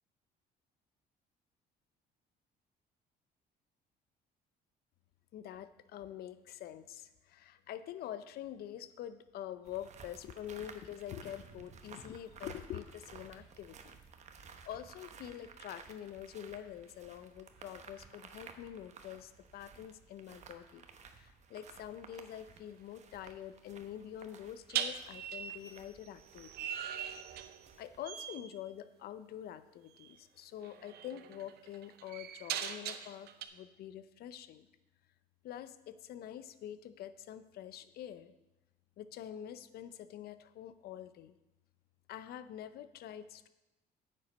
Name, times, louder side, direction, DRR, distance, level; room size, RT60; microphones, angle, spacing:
voice 1, 5.3-14.0 14.6-20.8 21.1-26.7 27.8-34.7 35.4-38.3 39.0-41.3 42.1-43.5, left 11 dB, 65° left, 13 dB, 0.6 m, -46 dB
sound 1, 9.6-28.0, right 6 dB, 45° right, 1.0 m, -55 dB
sound 2, 22.1-22.3 24.7-27.8 28.0-28.5 30.0-30.1 30.6-33.4, right 9 dB, 70° right, 0.8 m, -41 dB
9.4 x 7.6 x 5.2 m, 0.97 s
cardioid pair, 110°, 17 cm